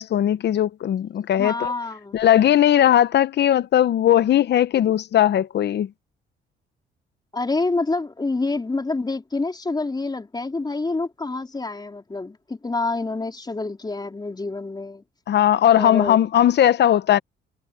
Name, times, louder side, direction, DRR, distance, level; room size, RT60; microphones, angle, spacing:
voice 1, 0.0-1.7 2.1-5.9 15.3-17.2, left 11 dB, 60° left, 0.8 m, -18 dB
voice 2, 1.3-2.2 7.3-15.0 15.8-16.2, left 3 dB, 20° left, 3.9 m, -27 dB
cardioid pair, 90°, 20 cm